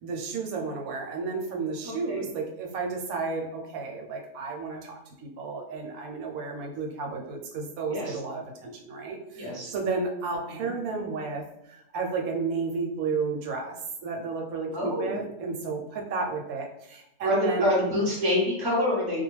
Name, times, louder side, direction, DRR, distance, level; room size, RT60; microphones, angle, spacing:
voice 1, 0.0-13.7 14.0-17.7, right 4 dB, 80° right, 1 dB, 1.0 m, -32 dB
voice 2, 1.8-2.2 7.9-8.2 9.4-9.7 10.5-10.7 14.7-15.2 17.2-19.2, left 1 dB, 25° right, -4 dB, 0.5 m, -27 dB
2.3 x 2.2 x 3.1 m, 0.80 s
omnidirectional pair, 1.5 m